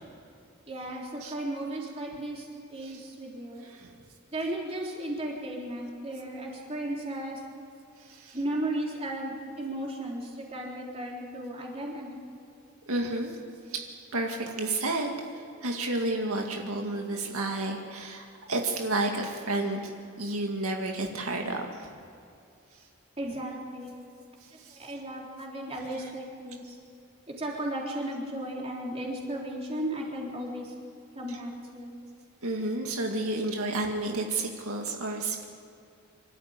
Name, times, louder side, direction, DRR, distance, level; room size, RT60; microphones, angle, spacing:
voice 1, 0.7-3.7 4.3-7.4 8.3-12.4 23.2-23.9 24.8-26.8 27.3-30.7 31.1-31.9, right 1 dB, 30° right, -1 dB, 3.7 m, -35 dB
voice 2, 3.6-3.9 8.0-8.4 12.9-13.4 13.7-13.8 14.1-19.9 20.2-22.1 24.6-24.8 31.3-31.4 32.4-35.5, right 2 dB, 80° right, 2 dB, 2.1 m, -31 dB
25.5 x 13.5 x 8.9 m, 2.6 s
head